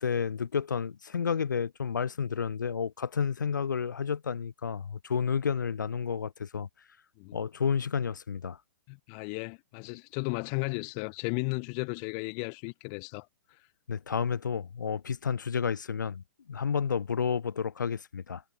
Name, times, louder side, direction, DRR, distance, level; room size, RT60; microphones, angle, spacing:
voice 1, 0.0-6.7 7.3-8.6 13.9-18.4, left 6 dB, 80° left, 1.5 m, -31 dB
voice 2, 8.9-13.3, left 40 dB or more, 40° left, 3.1 m, -34 dB
hypercardioid pair, 130°, 10 cm